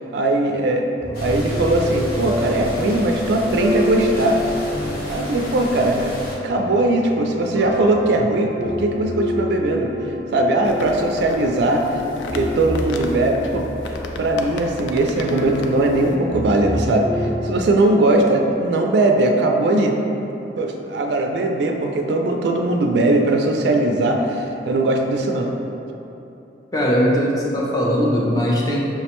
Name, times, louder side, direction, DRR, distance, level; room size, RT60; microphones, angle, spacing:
voice 1, 0.1-0.9 1.2-4.4 5.0-6.2 6.4-9.9 10.3-11.8 12.3-13.7 14.2-20.0 20.6-25.5, right 2 dB, 65° right, 3 dB, 0.3 m, -19 dB
sound 1, 1.0-17.6, left 1 dB, 10° right, 0.8 m, -28 dB
sound 2, 1.1-6.4, equal, 60° left, 0.7 m, -34 dB
sound 3, 10.6-16.2, left 2 dB, 80° left, 0.3 m, -36 dB
voice 2, 26.7-28.8, equal, 20° left, -4 dB, 0.5 m, -19 dB
5.6 x 2.1 x 2.9 m, 3.0 s
head